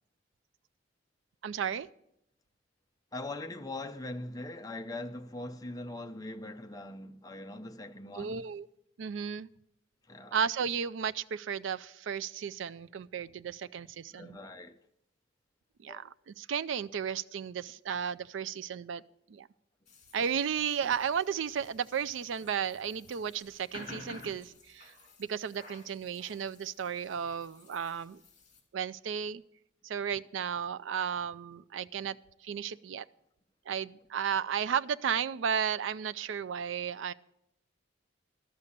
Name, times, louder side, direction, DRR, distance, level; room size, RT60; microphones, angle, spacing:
voice 1, 1.4-1.9 8.1-8.7 9.0-9.5 10.3-14.4 15.8-19.0 19.3-19.5 20.1-24.9 25.2-28.2 28.7-29.4 29.8-32.2 32.4-33.0 33.7-37.1, right 7 dB, 80° right, 0.4 m, -34 dB
voice 2, 3.1-8.4 10.1-10.4 14.1-14.7 15.9-16.0, left 2 dB, 20° left, 0.6 m, -41 dB
sound 1, 19.9-28.6, left 3 dB, 40° left, 2.6 m, -53 dB
12.5 x 6.6 x 8.4 m
head